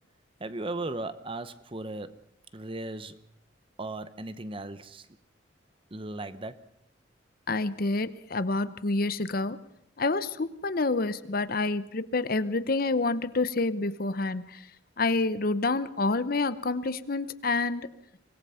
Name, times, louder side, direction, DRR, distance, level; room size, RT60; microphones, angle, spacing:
voice 1, 0.4-2.2 2.5-3.2 3.8-5.1 5.9-6.6, right 2 dB, 30° right, 0.9 m, -37 dB
voice 2, 7.5-9.6 10.0-14.7 15.0-17.9, left 3 dB, 50° left, 0.8 m, -28 dB
25.0 x 19.0 x 5.7 m
head